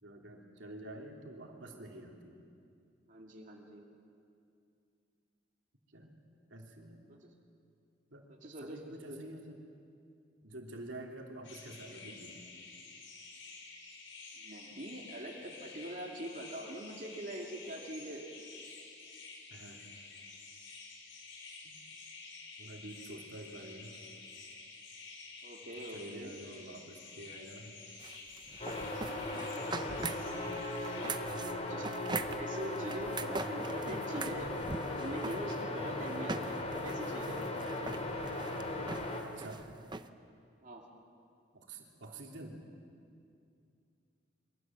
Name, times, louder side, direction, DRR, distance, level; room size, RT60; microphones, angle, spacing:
voice 1, 0.0-2.4 5.9-6.2 6.5-7.1 8.1-8.3 8.6-9.6 10.4-12.4 19.5-19.8 21.6-21.8 22.6-23.9 25.9-27.7 31.2-31.7 35.8-36.0 39.2-39.7 41.5-42.6, right 1 dB, 70° right, 0 dB, 3.3 m, -48 dB
voice 2, 3.1-3.9 7.1-7.3 8.4-9.2 14.4-18.3 25.4-26.3 31.5-34.5 34.9-36.6 36.8-37.5 40.6-40.8, right 1 dB, 40° right, -2 dB, 2.7 m, -44 dB
sound 1, 11.4-31.1, left 4 dB, 85° left, 5.4 m, -50 dB
sound 2, 28.0-40.1, right 3 dB, 25° right, 0.8 m, -42 dB
sound 3, 28.6-39.2, left 2 dB, 35° left, 3.1 m, -38 dB
28.0 x 24.0 x 7.6 m, 2.5 s
head